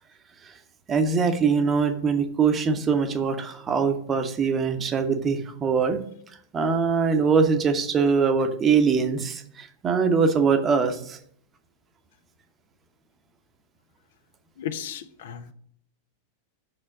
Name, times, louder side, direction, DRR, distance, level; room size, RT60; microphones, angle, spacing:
voice 1, 0.9-6.0 6.5-11.2, right 5 dB, 25° right, 8 dB, 0.8 m, -22 dB
voice 2, 14.6-15.5, left 9 dB, 55° left, 13 dB, 0.5 m, -35 dB
6.1 x 4.4 x 5.9 m, 0.62 s
figure-of-eight pair, 90°, 0 cm